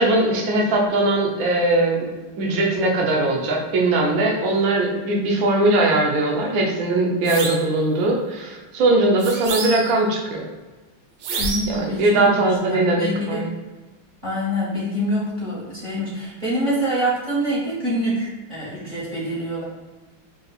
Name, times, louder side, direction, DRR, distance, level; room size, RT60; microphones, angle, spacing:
voice 1, 0.0-2.1 2.4-10.5 11.7-13.5, right 2 dB, 65° right, 0 dB, 0.9 m, -20 dB
sound 1, 7.2-7.7 9.2-10.0 11.2-11.8, right 4 dB, 85° right, 1.5 m, -28 dB
voice 2, 11.4-13.5 14.2-19.6, equal, 35° right, -6 dB, 0.8 m, -25 dB
5.3 x 2.8 x 2.3 m, 1.2 s
omnidirectional pair, 2.2 m